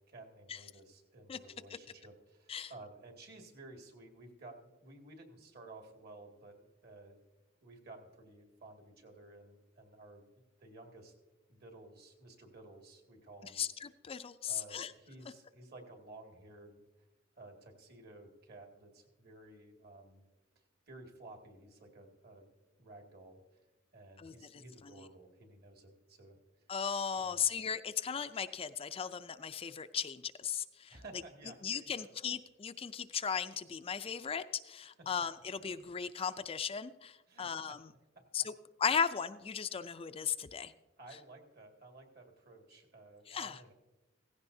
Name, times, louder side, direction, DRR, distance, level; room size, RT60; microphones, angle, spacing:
voice 1, 0.0-7.2 7.6-10.3 10.6-11.1 11.5-13.6 14.5-16.8 17.4-20.2 20.9-22.5 22.8-23.6 23.9-26.4 27.2-27.5 30.9-32.1 37.3-37.8 40.5-40.7 41.0-43.7, right 2 dB, 55° right, 3 dB, 2.1 m, -54 dB
voice 2, 13.6-14.9 24.2-24.6 25.0-25.1 26.7-30.9 31.6-37.8 38.3-38.5 38.8-40.7 43.3-43.6, left 7 dB, 30° left, 10 dB, 0.4 m, -36 dB
16.5 x 16.0 x 2.7 m, 1.1 s
head